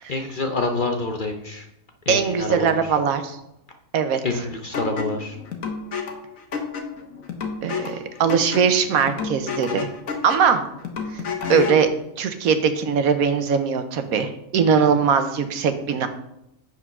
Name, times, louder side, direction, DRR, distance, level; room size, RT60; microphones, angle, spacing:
voice 1, 0.1-1.7 2.1-3.0 4.2-5.4, left 2 dB, 45° left, 4 dB, 0.7 m, -27 dB
voice 2, 2.1-3.4 3.9-4.2 7.6-9.9 10.2-10.6 11.1-11.2 11.5-11.9 12.2-16.1, right 6 dB, 80° right, 9 dB, 1.2 m, -20 dB
sound 1, 4.7-11.9, left 5 dB, 70° left, 1.4 m, -30 dB
8.1 x 4.6 x 6.0 m, 0.83 s
omnidirectional pair, 1.5 m